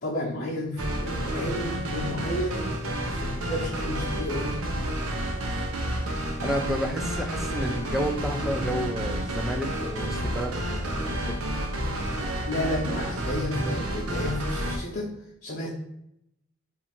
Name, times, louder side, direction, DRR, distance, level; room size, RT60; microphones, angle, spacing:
voice 1, 0.0-2.7 3.1-4.5 12.5-15.1 15.4-15.7, left 1 dB, 50° left, -7 dB, 0.8 m, -31 dB
sound 1, 0.8-14.8, right 1 dB, 85° right, 0.6 m, -30 dB
voice 2, 6.4-11.4, equal, ahead, 4 dB, 0.3 m, -31 dB
2.8 x 2.4 x 4.2 m, 0.77 s
head